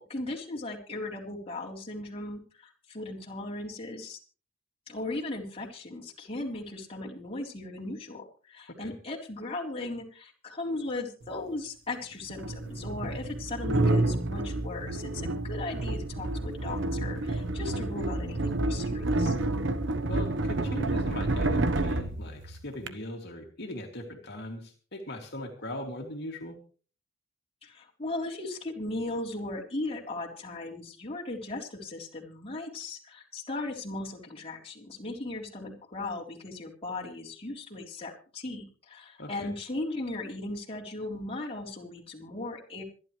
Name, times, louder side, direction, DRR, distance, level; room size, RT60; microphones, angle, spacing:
voice 1, 0.0-4.2 4.9-19.4 27.6-42.8, left 2 dB, 30° left, -3 dB, 3.7 m, -37 dB
sound 1, 11.2-11.3 12.3-22.9, right 2 dB, 65° right, 1.1 m, -29 dB
voice 2, 20.1-26.6 39.2-39.5, left 1 dB, 55° left, 1 dB, 2.5 m, -39 dB
26.5 x 11.0 x 3.2 m, 0.39 s
head